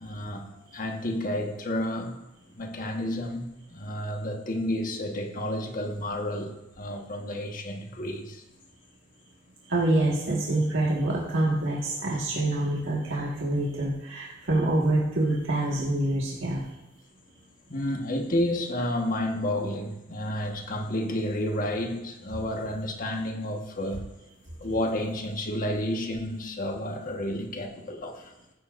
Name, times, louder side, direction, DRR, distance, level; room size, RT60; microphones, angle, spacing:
voice 1, 0.0-2.2 2.5-8.4 17.7-24.1 24.6-28.3, left 1 dB, 45° left, 1.4 m, -31 dB
voice 2, 9.7-16.7, right 1 dB, 85° right, 1.8 m, -26 dB
15.5 x 10.0 x 2.6 m
head